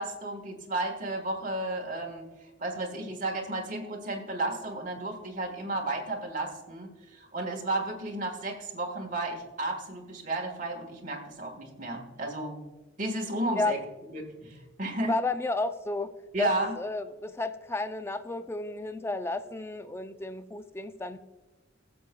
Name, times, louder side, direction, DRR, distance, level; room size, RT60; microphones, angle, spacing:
voice 1, 0.0-2.3 2.6-12.6 13.0-13.8 14.1-15.2 16.3-16.8, right 2 dB, 40° right, 2 dB, 1.3 m, -33 dB
voice 2, 15.1-16.1 16.4-16.5 16.8-21.2, left 2 dB, 15° left, 10 dB, 0.3 m, -32 dB
19.5 x 7.0 x 2.2 m, 1.2 s
head